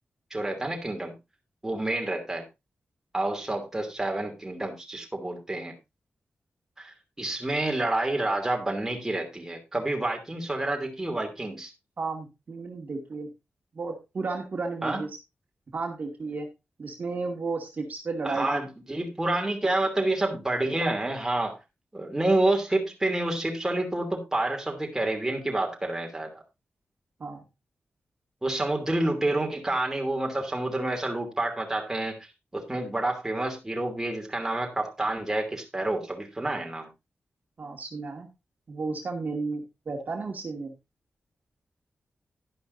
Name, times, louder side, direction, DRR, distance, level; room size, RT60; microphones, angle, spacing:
voice 1, 0.3-1.2 1.6-2.4 3.1-5.7 6.8-11.7 14.8-15.0 18.2-21.6 21.9-26.4 28.4-32.2 32.5-36.9, right 2 dB, 10° right, 2 dB, 2.9 m, -28 dB
voice 2, 12.0-13.3 13.7-15.1 15.7-16.5 16.8-18.6 27.2-27.4 37.6-38.3 38.7-40.7, right 3 dB, 40° right, 3 dB, 2.2 m, -33 dB
11.5 x 11.5 x 2.6 m, 0.24 s
wide cardioid pair, 175°, 4 cm